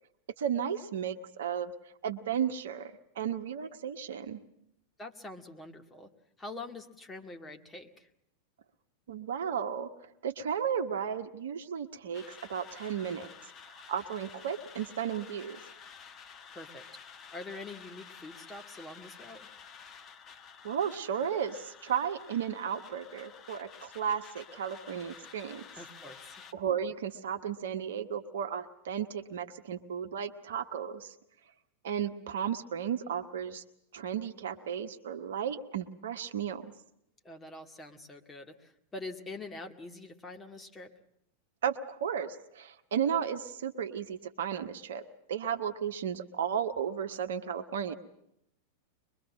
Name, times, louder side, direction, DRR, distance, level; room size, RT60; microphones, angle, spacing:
voice 1, 0.4-1.7 2.0-4.4 9.1-9.9 10.2-13.3 13.9-15.6 20.6-25.6 26.5-31.1 31.8-33.6 33.9-36.7 41.6-45.0 45.3-47.9, right 8 dB, 60° right, 9 dB, 1.2 m, -34 dB
voice 2, 5.0-6.1 6.4-8.1 16.5-19.5 25.8-26.5 37.2-40.9, left 2 dB, 15° left, 4 dB, 2.0 m, -45 dB
sound 1, 12.1-26.5, left 7 dB, 30° left, 1.2 m, -51 dB
23.5 x 22.5 x 7.6 m, 0.77 s
figure-of-eight pair, 90°, 0 cm